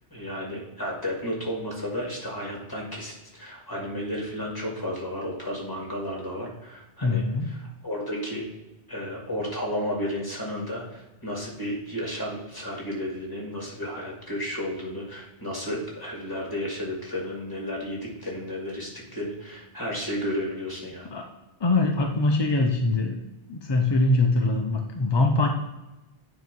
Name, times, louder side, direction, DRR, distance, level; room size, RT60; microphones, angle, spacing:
voice 1, 0.1-8.5 8.9-21.1, equal, 20° left, -2 dB, 2.1 m, -33 dB
voice 2, 7.0-7.5 21.1-21.3 21.6-23.2 23.5-25.5, left 2 dB, 35° left, 3 dB, 0.4 m, -23 dB
9.1 x 3.0 x 5.2 m, 0.99 s
omnidirectional pair, 1.1 m